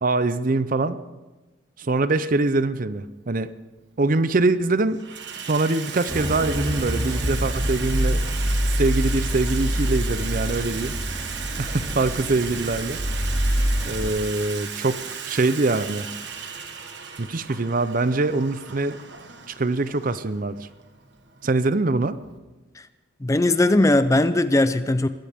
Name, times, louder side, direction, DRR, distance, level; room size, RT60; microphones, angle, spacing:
voice 1, 0.0-1.0 1.8-3.5 4.0-5.0 5.4-8.2 8.7-10.9 11.6-13.0 13.8-15.0 15.2-16.1 17.2-19.0 19.5-20.7 21.4-22.2, right 3 dB, 45° right, 14 dB, 0.6 m, -23 dB
Water tap faucet / Sink (filling or washing), 3.0-3.1 4.1-4.5 4.8-22.4, right 6 dB, 60° right, 1.5 m, -36 dB
sound 1, 6.1-14.1, equal, 20° right, 2.4 m, -26 dB
voice 2, 23.2-25.1, left 2 dB, 15° left, 12 dB, 0.5 m, -19 dB
22.0 x 15.5 x 3.6 m, 1.2 s
head